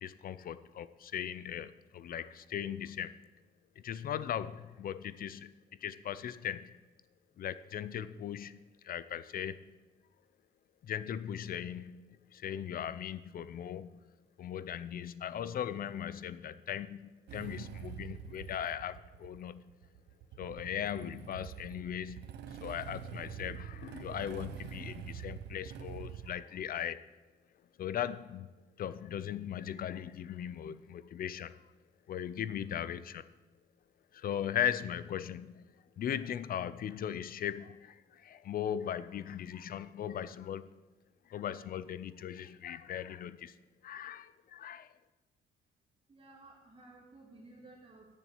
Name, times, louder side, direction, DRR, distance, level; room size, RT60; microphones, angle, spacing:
voice 1, 0.0-3.2 3.8-5.5 5.8-6.7 7.4-9.6 10.8-13.9 14.4-19.7 20.4-27.0 27.8-28.5 28.8-31.7 32.1-33.2 34.1-40.6 41.3-43.5 43.8-44.9, left 9 dB, 60° left, 15 dB, 0.5 m, -38 dB
Motorcycle / Engine starting, 17.3-26.4, right 9 dB, 85° right, 0.7 m, -46 dB
voice 2, 46.1-48.1, right 2 dB, 30° right, -4 dB, 1.8 m, -55 dB
7.3 x 6.9 x 8.2 m, 1.2 s
cardioid pair, 115°, 17 cm